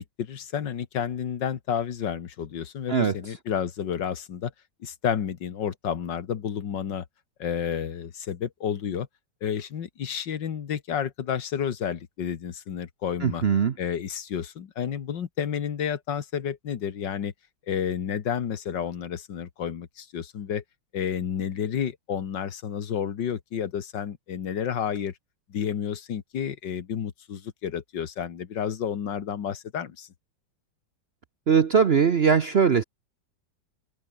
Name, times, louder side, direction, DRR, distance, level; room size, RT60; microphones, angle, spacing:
voice 1, 0.0-4.5 4.8-7.0 7.4-9.1 9.4-13.4 13.8-17.3 17.7-20.6 20.9-25.1 25.5-30.1, left 8 dB, 75° left, 2.1 m, -30 dB
voice 2, 13.2-13.7 31.5-32.8, right 6 dB, 50° right, 0.8 m, -20 dB
open air
omnidirectional pair, 2.0 m